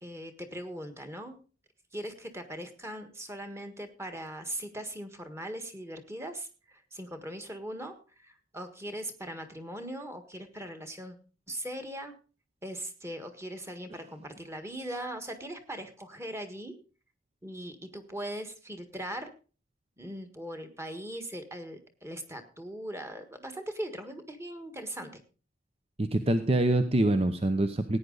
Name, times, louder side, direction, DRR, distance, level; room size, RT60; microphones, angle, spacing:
voice 1, 0.0-1.4 1.9-11.2 11.5-12.1 12.6-16.7 17.4-19.3 20.0-25.2, right 1 dB, 15° right, 7 dB, 1.6 m, -40 dB
voice 2, 26.0-28.0, right 1 dB, 30° right, 9 dB, 0.7 m, -25 dB
16.5 x 9.5 x 4.0 m, 0.36 s
head